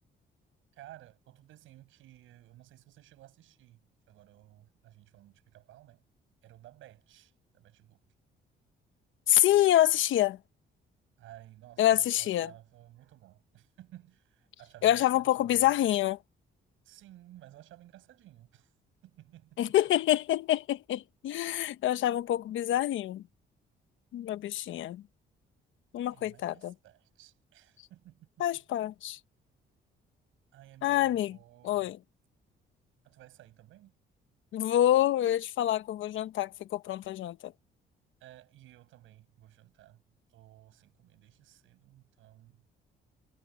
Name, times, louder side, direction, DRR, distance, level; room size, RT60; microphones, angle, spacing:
voice 1, 0.7-6.0 6.4-8.0 11.2-15.7 16.8-18.7 19.0-19.8 26.1-28.5 30.5-32.0 33.0-33.9 38.2-40.0 40.3-42.7, right 14 dB, 85° right, 7.3 m, -55 dB
voice 2, 9.3-10.4 11.8-12.5 14.8-16.2 19.6-23.2 24.1-25.0 25.9-26.7 28.4-29.2 30.8-31.4 31.6-32.0 34.5-37.5, left 13 dB, 80° left, 1.1 m, -26 dB
cardioid pair, 90°, 20 cm